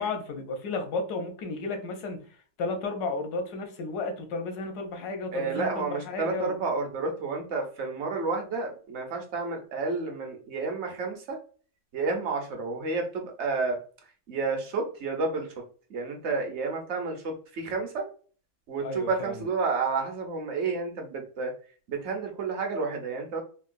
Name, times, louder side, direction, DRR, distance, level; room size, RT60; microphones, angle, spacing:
voice 1, 0.0-6.6 18.8-19.5, left 3 dB, 80° left, 1.2 m, -33 dB
voice 2, 5.3-11.4 11.9-13.8 14.3-15.5 15.9-18.1 18.7-21.5 21.9-23.4, right 4 dB, 55° right, 0.9 m, -30 dB
3.7 x 2.2 x 2.5 m
omnidirectional pair, 1.7 m